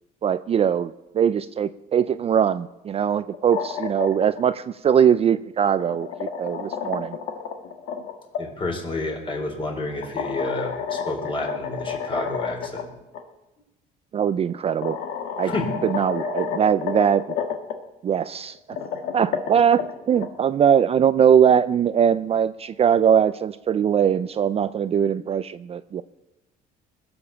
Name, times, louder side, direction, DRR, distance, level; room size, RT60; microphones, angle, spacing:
voice 1, 0.2-7.2 14.1-15.0 15.4-15.5 15.8-17.2 18.0-18.8 19.1-26.0, right 8 dB, 35° right, 14 dB, 0.4 m, -21 dB
sound 1, 3.3-4.4 5.6-8.4 10.0-12.8 13.1-13.2 14.3-14.4 14.8-17.7 18.6-20.3, left 7 dB, 80° left, 1.7 m, -30 dB
voice 2, 8.4-12.9 15.4-15.7, left 2 dB, 30° left, 1 dB, 3.8 m, -30 dB
21.0 x 7.0 x 7.0 m, 0.97 s
cardioid pair, 110°, 17 cm